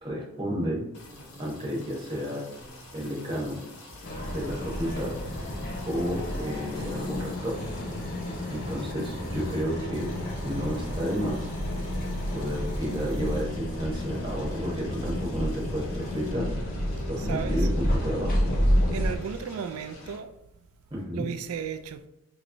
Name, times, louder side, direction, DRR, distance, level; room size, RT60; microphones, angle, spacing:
voice 1, 0.0-0.8 1.4-2.4 2.9-3.6 4.3-5.1 5.9-7.6 8.5-10.1 10.4-11.5 12.3-16.5 17.1-18.3 20.9-21.2, equal, 20° right, 1.0 m, -31 dB
sound 1, 0.9-20.2, left 2 dB, 80° left, 0.8 m, -47 dB
sound 2, 1.0-17.9, equal, 20° left, 1.4 m, -51 dB
sound 3, 4.0-19.2, equal, 45° left, 0.8 m, -30 dB
voice 2, 17.2-17.7 18.9-20.3 21.1-22.1, right 7 dB, 80° right, 0.3 m, -34 dB
3.1 x 2.9 x 2.6 m
head